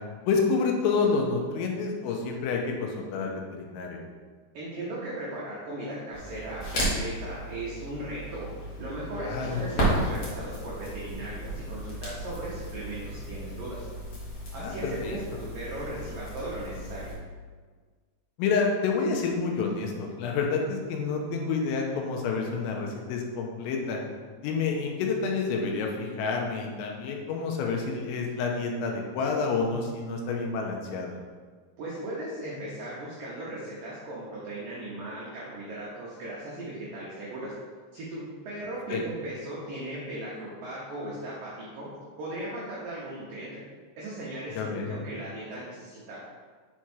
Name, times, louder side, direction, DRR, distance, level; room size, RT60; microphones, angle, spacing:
voice 1, 0.3-4.0 9.2-9.6 14.6-15.2 18.4-24.0 24.4-31.1 38.9-39.0 44.6-45.0, left 4 dB, 90° left, 1 dB, 3.5 m, -28 dB
voice 2, 4.5-8.5 8.8-13.9 14.5-17.1 31.8-37.5 37.9-41.9 42.2-43.6 44.0-46.2, right 1 dB, 85° right, -7 dB, 1.9 m, -37 dB
Crackle, 6.1-17.1, right 1 dB, 60° left, 1.5 m, -34 dB
7.8 x 4.7 x 4.4 m, 1.5 s
omnidirectional pair, 5.9 m